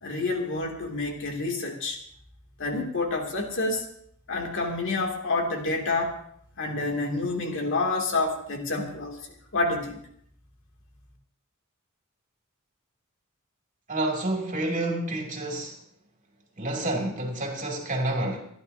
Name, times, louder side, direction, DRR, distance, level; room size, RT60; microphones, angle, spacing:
voice 1, 0.0-2.0 2.6-3.9 4.3-6.2 6.6-9.2 9.5-10.0, left 3 dB, 65° left, 2.7 m, -28 dB
voice 2, 13.9-15.8 16.6-18.5, right 1 dB, 40° right, 2.8 m, -29 dB
28.5 x 11.0 x 2.8 m
head